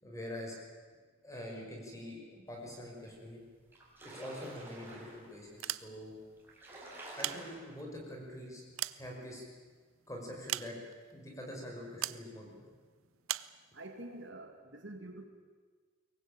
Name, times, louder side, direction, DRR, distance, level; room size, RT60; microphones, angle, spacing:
voice 1, 0.0-0.6 1.2-3.4 4.0-6.1 7.1-8.6 8.9-9.5 10.1-10.8 11.1-12.6, left 1 dB, 15° left, -1 dB, 5.7 m, -45 dB
sound 1, 3.1-3.2 3.5-5.3 6.0-6.1 6.4-7.6, right 2 dB, 10° right, 5.7 m, -49 dB
sound 2, 5.5-6.3 7.0-8.0 8.5-9.7 10.5-11.1 12.0-12.3 13.3-13.6, right 14 dB, 80° right, 0.7 m, -39 dB
voice 2, 13.7-15.3, right 1 dB, 60° right, 5 dB, 2.2 m, -47 dB
23.0 x 19.5 x 8.9 m, 1.5 s
head